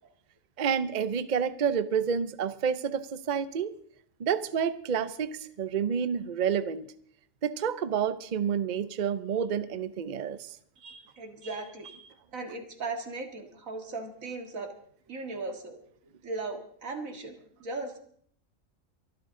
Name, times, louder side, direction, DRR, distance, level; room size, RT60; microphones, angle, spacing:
voice 1, 0.6-3.7 4.2-6.9 7.4-10.6, right 7 dB, 45° right, 13 dB, 0.7 m, -29 dB
voice 2, 10.8-14.7 15.1-15.8 16.2-18.0, right 3 dB, 90° right, 5 dB, 2.3 m, -38 dB
23.5 x 12.5 x 3.8 m, 0.62 s
omnidirectional pair, 1.4 m